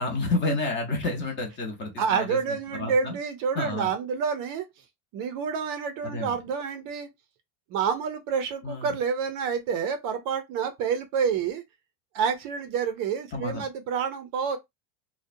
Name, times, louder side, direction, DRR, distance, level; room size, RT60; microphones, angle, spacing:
voice 1, 0.0-2.4 2.7-3.2 3.5-3.9 6.0-6.3 8.6-9.0 13.3-13.6, left 2 dB, 25° left, 0.7 m, -30 dB
voice 2, 2.0-4.6 5.1-7.1 7.7-11.6 12.1-14.6, right 6 dB, 50° right, 0.5 m, -28 dB
2.6 x 2.1 x 2.5 m
cardioid pair, 150°, 46 cm